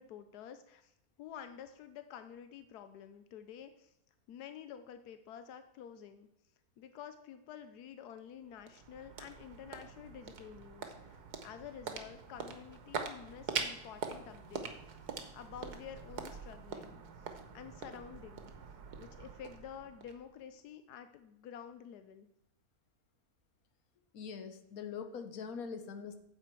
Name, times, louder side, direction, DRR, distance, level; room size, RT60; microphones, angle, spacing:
voice 1, 0.0-3.9 4.3-6.3 6.8-14.7 15.3-18.5 19.0-22.3, left 8 dB, 90° left, 9 dB, 1.2 m, -50 dB
sound 1, 8.2-20.6, right 6 dB, 85° right, 1.6 m, -44 dB
voice 2, 24.1-26.2, left 6 dB, 70° left, 8 dB, 1.4 m, -43 dB
9.8 x 7.6 x 4.6 m, 0.82 s
omnidirectional pair, 1.6 m